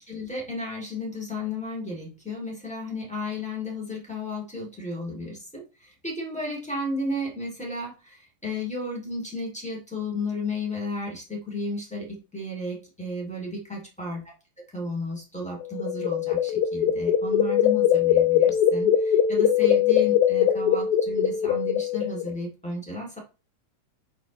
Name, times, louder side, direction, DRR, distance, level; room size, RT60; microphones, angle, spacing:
voice 1, 0.1-14.2 14.7-23.2, left 2 dB, 5° left, -4 dB, 1.8 m, -33 dB
sound 1, 15.6-22.3, left 9 dB, 90° left, 2.7 m, -21 dB
10.5 x 4.1 x 3.1 m, 0.32 s
omnidirectional pair, 4.2 m